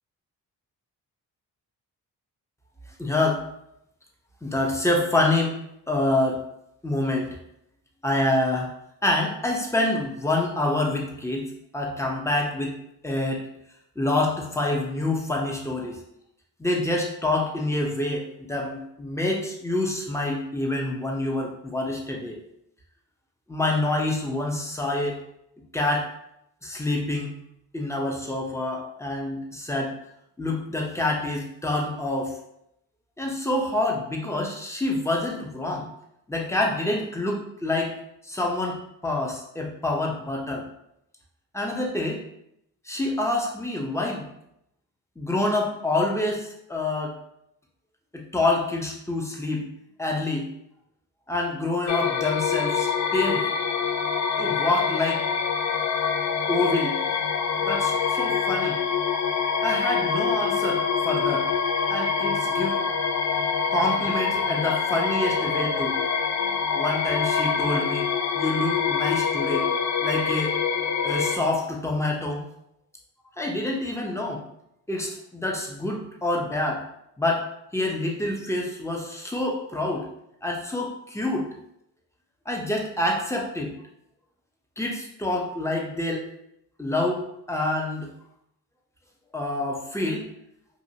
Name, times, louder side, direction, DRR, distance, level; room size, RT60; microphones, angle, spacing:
voice 1, 3.0-3.4 4.4-5.6 5.9-6.4 6.8-7.3 8.0-8.7 9.0-11.5 11.7-12.7 13.0-13.4 14.0-16.0 16.6-22.4 23.5-25.2 25.7-26.1 26.6-27.3 27.7-29.9 30.4-32.3 33.2-35.9 36.3-37.9 38.2-40.6 41.5-42.2 42.9-44.3 45.2-47.2 48.1-49.6 50.0-50.5 51.3-53.5 54.3-55.2 56.5-57.0 57.6-58.8 59.6-61.4 61.9-62.8 63.7-66.0 66.7-68.1 68.3-69.7 70.0-70.5 71.0-72.4 73.4-74.4 74.9-76.8 77.2-77.4 77.7-80.1 80.4-81.5 82.5-83.7 84.8-86.2 86.8-88.1 89.3-90.2, left 2 dB, 5° left, 0 dB, 0.8 m, -27 dB
sound 1, 51.9-71.4, left 6 dB, 40° left, 0.4 m, -25 dB
2.7 x 2.6 x 2.8 m, 0.77 s
supercardioid pair, 45°, 43 cm